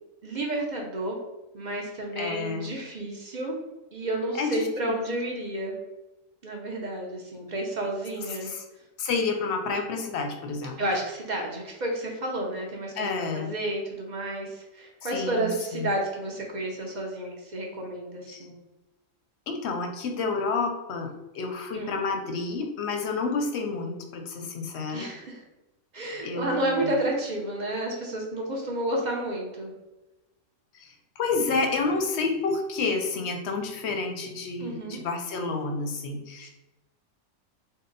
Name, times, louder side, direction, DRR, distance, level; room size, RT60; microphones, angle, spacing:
voice 1, 0.2-1.2 1.5-3.6 3.9-5.8 6.4-8.5 10.8-12.9 13.3-18.5 21.7-22.0 24.9-25.4 25.9-29.7 34.6-35.0 36.4-36.5, right 1 dB, 45° right, -1 dB, 0.6 m, -31 dB
voice 2, 2.2-2.7 4.3-5.0 8.3-8.6 9.0-10.8 13.0-13.5 15.0-15.9 18.3-18.5 19.5-25.1 26.2-26.9 30.7-36.5, left 4 dB, 65° left, 4 dB, 0.8 m, -30 dB
3.6 x 2.1 x 3.8 m, 1.0 s
omnidirectional pair, 1.4 m